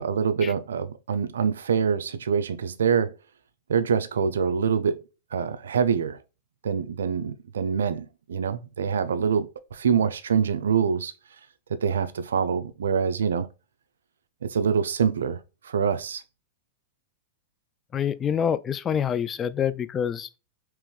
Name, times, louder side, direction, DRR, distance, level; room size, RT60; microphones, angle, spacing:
voice 1, 0.0-3.1 3.7-5.0 5.3-6.2 6.6-11.1 11.7-13.5 14.4-16.2, right 6 dB, 90° right, 0.4 m, -25 dB
voice 2, 17.9-20.3, left 8 dB, 25° left, 0.3 m, -26 dB
3.4 x 3.0 x 3.1 m
hypercardioid pair, 115°, 0 cm